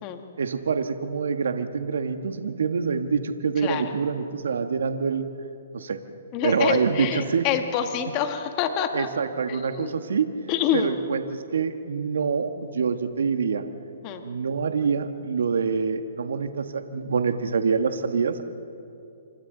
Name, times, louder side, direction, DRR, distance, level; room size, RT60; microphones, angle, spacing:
voice 1, 0.4-5.2 5.7-6.0 6.4-7.4 8.9-10.3 10.7-13.7 14.2-18.4, right 5 dB, 80° right, 8 dB, 1.3 m, -26 dB
voice 2, 3.6-3.9 6.3-9.1 9.5-10.0 10.5-11.0 14.0-14.2, left 9 dB, 35° left, 6 dB, 1.6 m, -27 dB
28.5 x 25.5 x 3.9 m, 2.6 s
hypercardioid pair, 140°, 0 cm